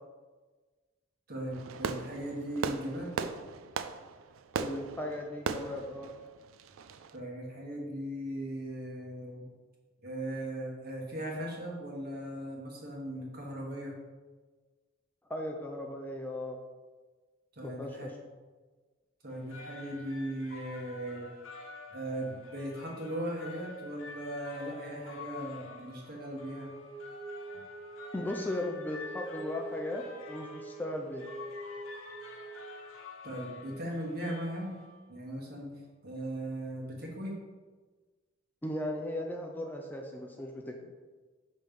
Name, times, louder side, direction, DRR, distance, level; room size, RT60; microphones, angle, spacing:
voice 1, 1.3-3.1 7.1-9.4 10.0-13.9 17.6-18.1 19.2-21.3 21.9-26.7 33.2-34.7 35.1-35.7 36.0-37.4, right 1 dB, 50° right, -2 dB, 1.4 m, -38 dB
Fireworks, 1.5-7.1, right 6 dB, 75° right, 0.4 m, -38 dB
voice 2, 4.6-6.1 15.3-16.6 17.6-18.1 28.1-31.3 38.6-40.8, left 1 dB, 10° left, 1 dB, 0.4 m, -37 dB
sound 1, 19.3-35.2, left 4 dB, 85° left, 0.8 m, -49 dB
Wind instrument woodwind instrument, 26.2-33.0, right 2 dB, 25° left, 1.0 m, -46 dB
6.0 x 3.2 x 5.2 m, 1.4 s
head